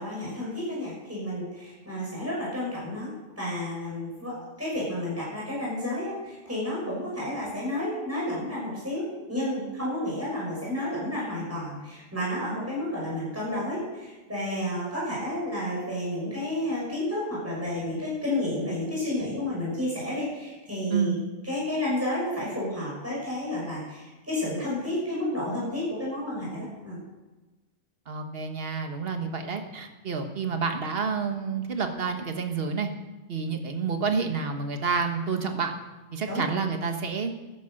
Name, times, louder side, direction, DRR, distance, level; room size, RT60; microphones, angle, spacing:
voice 1, 0.0-9.0 9.3-21.2 21.4-27.0 36.3-36.4, left 1 dB, 10° right, -7 dB, 6.3 m, -31 dB
voice 2, 20.9-21.3 28.1-32.9 33.3-35.7 36.1-37.3, right 5 dB, 50° right, 5 dB, 1.5 m, -29 dB
13.5 x 10.5 x 6.5 m, 1.1 s
omnidirectional pair, 1.3 m